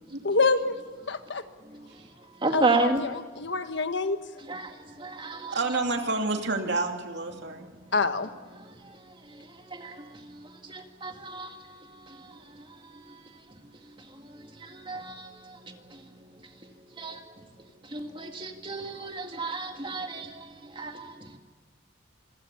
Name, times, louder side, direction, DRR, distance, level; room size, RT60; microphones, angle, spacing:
voice 1, 0.2-0.8 1.1-1.4 2.5-4.2 7.9-8.3, left 3 dB, 60° left, 1.4 m, -26 dB
voice 2, 2.4-3.0 4.5-5.6 9.3-11.7 12.0-12.4 14.6-16.0 17.0-17.2 17.9-21.4, right 3 dB, 25° right, 2.1 m, -32 dB
voice 3, 5.5-7.7, right 3 dB, 60° right, 2.7 m, -29 dB
26.5 x 16.0 x 8.3 m
head